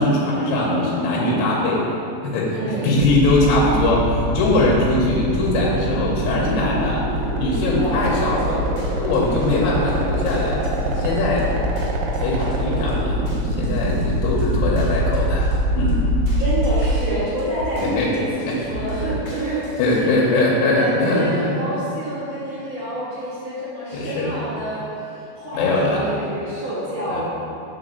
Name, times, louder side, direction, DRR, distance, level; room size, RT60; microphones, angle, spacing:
voice 1, 0.0-1.8 2.2-7.0 7.4-8.6 9.0-11.5 12.2-16.1 17.8-18.1 18.5-18.6 19.8-21.6 23.9-24.3 25.5-26.1 27.1-27.2, left 2 dB, 90° left, -4 dB, 3.4 m, -21 dB
voice 2, 2.5-2.9 7.8-8.7 9.2-10.1 16.4-19.6 19.9-20.2 20.7-27.2, right 1 dB, 90° right, -11 dB, 1.4 m, -29 dB
sound 1, 3.0-17.0, right 2 dB, 75° right, 2.7 m, -22 dB
sound 2, 8.0-20.0, right 1 dB, 65° left, 1.9 m, -32 dB
6.2 x 4.8 x 6.4 m, 2.7 s
omnidirectional pair, 5.6 m